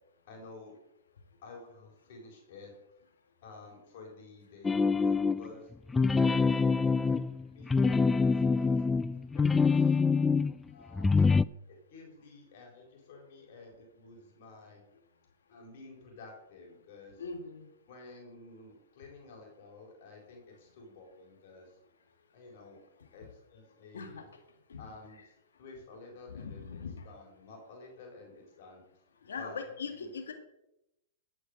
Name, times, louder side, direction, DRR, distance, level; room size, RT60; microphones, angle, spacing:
voice 1, 0.3-0.7 1.4-2.7 3.4-5.7 6.2-8.8 9.3-10.0 10.7-11.2 11.7-14.8 15.5-17.2 17.9-21.8 22.3-22.8 23.1-24.3 24.8-26.7 27.0-28.8 29.4-29.5 29.8-30.1, left 3 dB, 60° left, 0 dB, 4.5 m, -52 dB
sound 1, 4.6-5.5 5.9-10.5 10.9-11.4, left 4 dB, 10° left, 0.3 m, -25 dB
voice 2, 17.2-17.7 23.9-24.3 24.7-24.9 26.3-27.1 29.2-30.3, left 5 dB, 85° left, 6 dB, 1.9 m, -40 dB
13.0 x 6.5 x 6.5 m, 0.86 s
hypercardioid pair, 120°, 0 cm